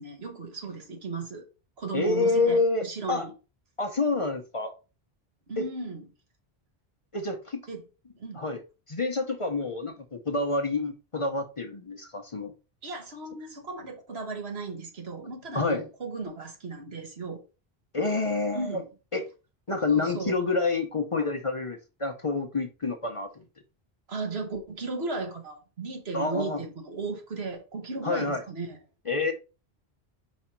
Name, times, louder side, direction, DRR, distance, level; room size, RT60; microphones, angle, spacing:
voice 1, 0.0-1.4 1.8-3.3 5.5-6.1 7.7-7.8 8.2-8.4 12.8-17.4 18.5-18.9 19.9-20.4 24.1-28.8, right 3 dB, 75° right, 1.7 m, -36 dB
voice 2, 1.9-3.3 3.8-4.7 5.6-5.7 7.1-7.6 8.3-8.6 8.9-12.5 15.5-15.9 17.9-18.8 19.1-19.2 19.7-23.4 26.1-26.6 28.0-28.4 29.1-29.3, left 3 dB, 35° left, 0.7 m, -28 dB
5.2 x 4.9 x 4.3 m
omnidirectional pair, 1.1 m